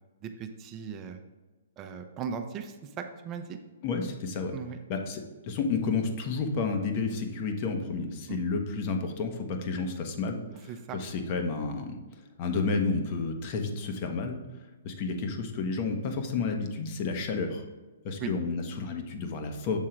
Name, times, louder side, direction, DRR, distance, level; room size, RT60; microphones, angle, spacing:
voice 1, 0.2-1.2 1.8-3.6 4.5-4.8 8.3-8.4 10.7-11.0 18.2-18.3, right 7 dB, 25° right, 6 dB, 0.6 m, -38 dB
voice 2, 3.8-4.5 4.9-12.0 12.4-14.4 14.8-17.6 18.0-19.8, left 4 dB, 40° left, 5 dB, 1.0 m, -31 dB
7.3 x 3.7 x 4.5 m, 1.2 s
hypercardioid pair, 135°, 0 cm